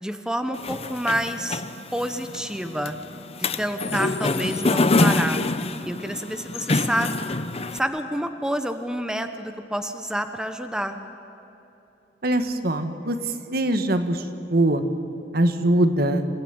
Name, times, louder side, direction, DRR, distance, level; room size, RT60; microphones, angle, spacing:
voice 1, 0.0-1.6 1.9-2.9 3.6-5.4 5.8-7.1 7.7-11.0, equal, 5° right, 7 dB, 1.0 m, -28 dB
sound 1, 0.5-7.8, left 2 dB, 35° left, 0.8 m, -26 dB
voice 2, 12.2-13.2 13.5-14.2 14.5-14.8 15.3-16.3, right 1 dB, 55° right, 8 dB, 1.6 m, -22 dB
27.5 x 16.0 x 9.7 m, 3.0 s
head